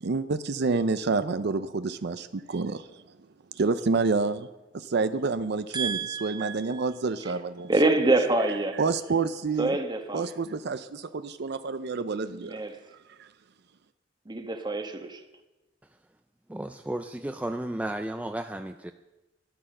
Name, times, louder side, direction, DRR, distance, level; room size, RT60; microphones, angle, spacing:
voice 1, 0.0-3.0 3.5-4.5 4.7-7.9 8.8-9.8 10.1-12.6 13.2-13.3, right 4 dB, 60° right, 12 dB, 0.5 m, -28 dB
voice 2, 5.7-6.8 7.7-8.8 9.6-10.2 12.5-12.7 14.3-15.2, right 2 dB, 25° right, 7 dB, 1.2 m, -26 dB
voice 3, 16.5-18.9, right 1 dB, 5° right, 8 dB, 0.4 m, -33 dB
12.5 x 11.0 x 6.5 m, 1.1 s
head